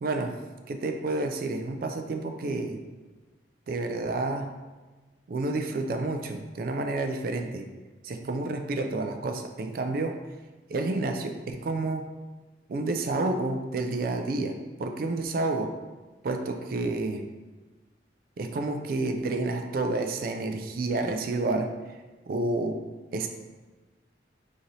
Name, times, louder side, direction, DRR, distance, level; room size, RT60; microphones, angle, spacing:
voice 1, 0.0-0.4 0.7-2.8 3.7-4.5 5.3-7.7 8.0-10.2 10.7-12.1 12.7-15.7 16.2-17.3 18.4-21.7 22.3-22.8 23.1-23.3, right 2 dB, 50° right, 5 dB, 0.3 m, -29 dB
3.0 x 2.6 x 3.9 m, 1.2 s
head